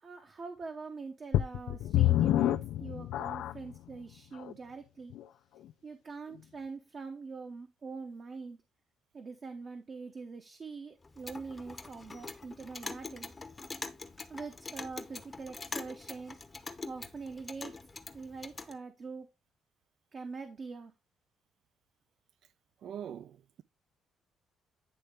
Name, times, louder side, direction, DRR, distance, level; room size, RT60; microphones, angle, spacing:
voice 1, 0.0-5.1 5.8-8.6 9.1-13.3 14.3-16.4 16.8-17.8 18.1-19.3 20.1-20.9, right 4 dB, 40° right, 0.8 m, -44 dB
sound 1, 1.3-3.8 4.4-4.5 5.1-5.2, left 13 dB, 80° left, 0.4 m, -28 dB
Clock, 11.0-18.7, left 3 dB, 25° left, 0.7 m, -44 dB
voice 2, 22.8-23.6, right 9 dB, 70° right, 0.4 m, -43 dB
9.8 x 3.3 x 3.4 m
cardioid pair, 110°, 0 cm